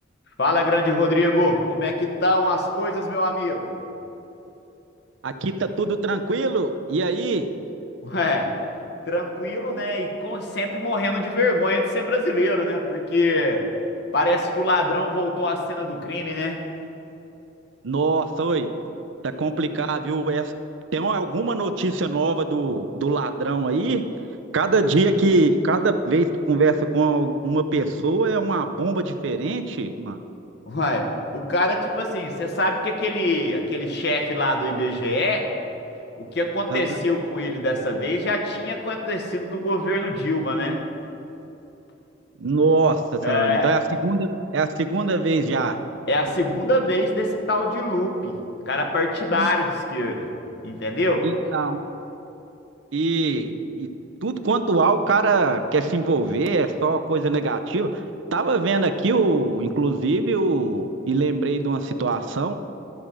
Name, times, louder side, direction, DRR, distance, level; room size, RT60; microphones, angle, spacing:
voice 1, 0.4-3.7 8.0-8.5 9.1-13.6 14.1-16.6 30.7-35.5 36.2-40.8 43.2-43.7 46.1-48.3 48.6-50.3 50.6-51.3, left 1 dB, 60° left, 2 dB, 1.2 m, -24 dB
voice 2, 5.2-7.5 17.8-18.7 19.2-20.5 20.9-24.0 24.5-30.2 36.7-36.8 42.4-43.0 43.3-45.8 49.3-49.5 51.2-51.8 52.9-53.9 54.2-57.9 58.3-62.5, right 3 dB, 75° right, 8 dB, 0.6 m, -22 dB
12.0 x 5.0 x 7.4 m, 2.9 s
head